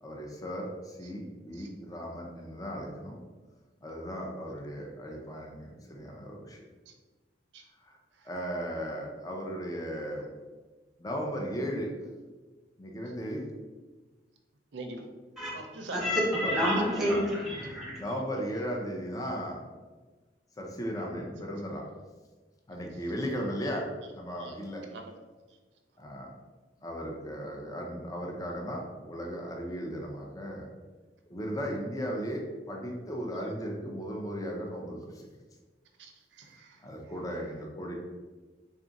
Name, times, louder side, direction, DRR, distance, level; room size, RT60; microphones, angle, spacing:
voice 1, 0.0-3.2 3.8-6.6 7.8-8.0 8.2-10.3 11.0-11.9 12.8-13.4 16.4-17.3 18.0-19.6 20.6-21.8 22.7-24.8 26.0-26.3 26.8-30.7 31.3-35.2 36.8-37.9, equal, 20° left, 0 dB, 0.5 m, -36 dB
voice 2, 14.7-15.0 15.5-16.1 16.7-17.2 24.4-24.5 24.9-25.1 36.0-36.8, right 3 dB, 85° right, 4 dB, 0.6 m, -43 dB
voice 3, 15.9-18.0, equal, ahead, -5 dB, 1.0 m, -28 dB
3.4 x 2.5 x 3.9 m, 1.3 s
head